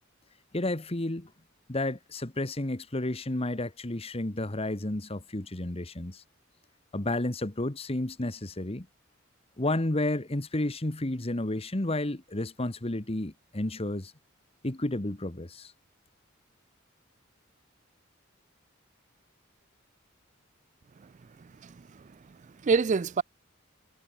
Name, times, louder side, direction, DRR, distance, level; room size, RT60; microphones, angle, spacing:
voice 1, 0.5-1.3 1.7-6.2 6.9-8.9 9.6-14.1 14.6-15.7, left 1 dB, 30° left, 1.3 m, -31 dB
voice 2, 21.4-23.2, right 5 dB, 35° right, 0.4 m, -29 dB
head